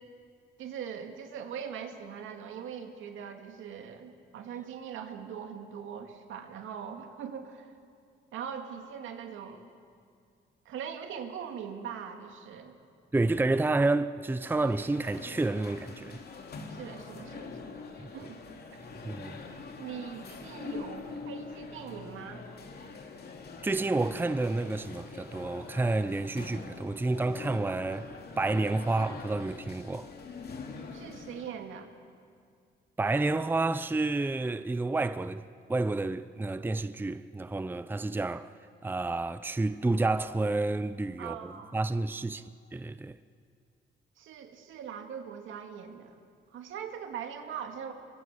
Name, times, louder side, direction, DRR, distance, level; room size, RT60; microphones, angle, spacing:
voice 1, 0.6-7.7 8.3-9.6 10.7-12.8 16.7-17.8 18.1-18.4 18.7-18.8 19.8-22.4 30.9-31.9 41.2-41.8 44.2-46.2 46.5-47.9, right 7 dB, 85° right, 2.2 m, -41 dB
voice 2, 13.1-16.2 18.0-18.3 19.0-19.4 23.6-28.1 28.4-30.1 33.0-38.5 38.8-42.4 42.7-43.2, right 2 dB, 10° right, 0.6 m, -30 dB
sound 1, 14.3-31.6, left 4 dB, 55° left, 2.6 m, -44 dB
24.0 x 22.5 x 7.3 m
cardioid pair, 90°, 20 cm